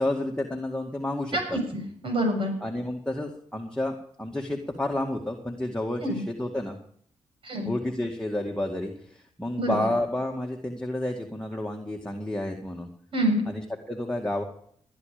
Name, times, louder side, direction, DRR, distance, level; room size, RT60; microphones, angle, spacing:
voice 1, 0.0-1.6 2.6-6.8 7.6-12.9 13.5-14.4, left 1 dB, 5° left, 0 dB, 2.2 m, -30 dB
voice 2, 1.3-2.5 6.0-6.2 7.4-7.7 9.6-9.8 13.1-13.4, right 1 dB, 50° right, 3 dB, 7.3 m, -26 dB
19.5 x 10.5 x 5.2 m, 0.64 s
cardioid pair, 65°, 11 cm